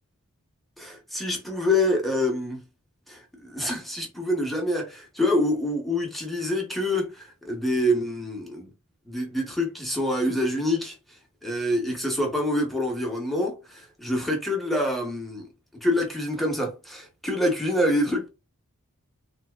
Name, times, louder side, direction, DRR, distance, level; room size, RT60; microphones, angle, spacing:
voice 1, 0.8-2.6 3.1-8.7 9.1-10.9 11.4-15.4 15.8-18.3, left 1 dB, ahead, 0.9 m, -26 dB
3.5 x 2.8 x 2.3 m
head